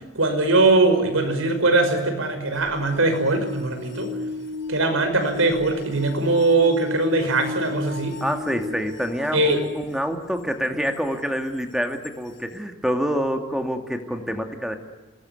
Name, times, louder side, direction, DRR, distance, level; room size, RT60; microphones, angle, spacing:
voice 1, 0.2-4.1 4.7-8.2 9.3-9.6, right 2 dB, 90° right, 7 dB, 5.7 m, -21 dB
sound 1, 2.6-10.2 10.9-11.0 12.0-12.1, left 3 dB, 65° left, 2.5 m, -34 dB
voice 2, 8.2-14.8, equal, 5° right, 5 dB, 2.2 m, -27 dB
27.5 x 20.5 x 9.6 m, 1.2 s
head